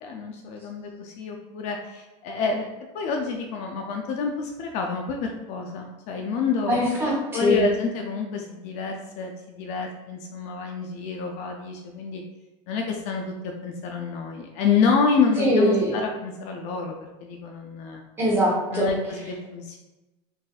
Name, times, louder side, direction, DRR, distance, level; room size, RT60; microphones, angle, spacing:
voice 1, 0.0-2.7 2.9-6.8 7.3-12.2 12.7-18.0 18.7-19.8, left 5 dB, 55° left, 2 dB, 0.4 m, -28 dB
voice 2, 6.7-7.6 15.4-15.9 18.2-19.2, equal, 15° right, -5 dB, 0.9 m, -22 dB
3.9 x 2.5 x 2.3 m, 1.1 s
cardioid pair, 150°, 14 cm